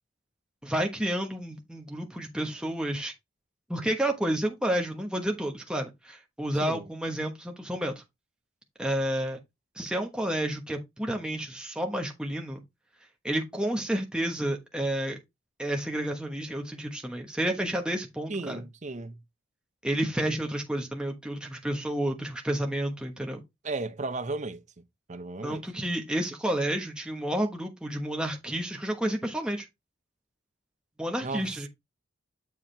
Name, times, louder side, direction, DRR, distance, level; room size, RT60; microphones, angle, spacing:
voice 1, 0.6-3.1 3.7-8.0 8.8-9.4 9.8-12.6 13.2-15.2 15.6-18.6 19.8-23.4 25.4-29.7 31.0-31.7, right 1 dB, 5° right, 1.2 m, -30 dB
voice 2, 18.3-19.2 23.6-24.6 25.1-25.6 31.2-31.5, right 3 dB, 35° right, 0.6 m, -34 dB
7.2 x 4.8 x 3.3 m
head